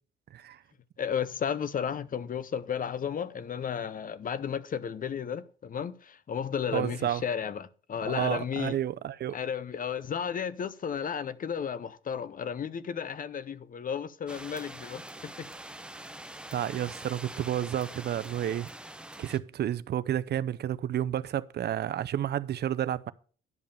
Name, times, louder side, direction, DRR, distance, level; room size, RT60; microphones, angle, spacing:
voice 1, 0.3-0.6 6.7-7.2 8.0-9.3 16.5-18.7 19.2-23.1, right 11 dB, 55° right, 0.5 m, -31 dB
voice 2, 1.0-8.7 9.3-15.5, left 7 dB, 45° left, 0.7 m, -33 dB
sound 1, 14.3-19.4, right 1 dB, 5° right, 0.7 m, -44 dB
11.0 x 5.2 x 6.9 m
cardioid pair, 90°, 20 cm